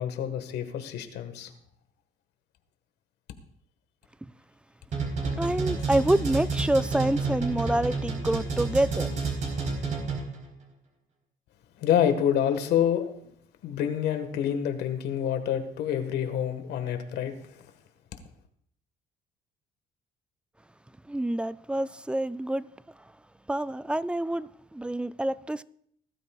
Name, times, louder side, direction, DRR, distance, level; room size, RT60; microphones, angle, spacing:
voice 1, 0.0-1.5 11.8-13.1 13.6-17.4, left 9 dB, 80° left, 1.6 m, -27 dB
sound 1, 4.9-10.4, right 4 dB, 45° right, 3.9 m, -29 dB
voice 2, 5.4-9.1 21.1-22.7 23.5-25.6, right 1 dB, 5° right, 0.3 m, -27 dB
20.0 x 12.5 x 2.4 m
cardioid pair, 110°, 17 cm